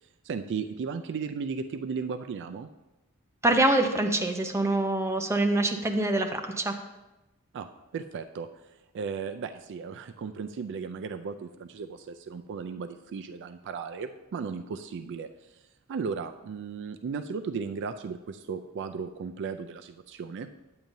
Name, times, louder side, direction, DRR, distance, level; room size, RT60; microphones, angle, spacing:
voice 1, 0.2-2.7 7.5-7.7 7.9-8.5 8.9-15.3 15.9-20.5, right 5 dB, 55° right, 8 dB, 0.3 m, -35 dB
voice 2, 3.4-6.8, right 2 dB, 10° right, 3 dB, 0.6 m, -25 dB
9.2 x 8.8 x 2.7 m, 1.0 s
head